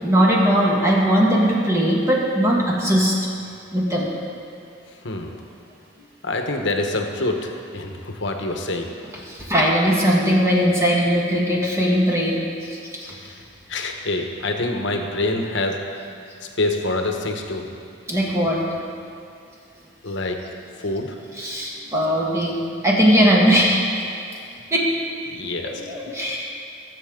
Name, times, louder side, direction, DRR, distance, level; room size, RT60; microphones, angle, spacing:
voice 1, 0.0-3.2 3.7-4.1 9.2-13.1 18.1-18.6 21.4-23.9 24.7-24.9 25.4-26.5, equal, 15° right, -4 dB, 1.6 m, -19 dB
voice 2, 6.2-8.9 13.7-15.8 16.6-17.7 20.0-20.4 20.8-21.1 25.3-25.8, left 2 dB, 60° left, 3 dB, 1.1 m, -25 dB
20.5 x 7.7 x 3.8 m, 2.4 s
head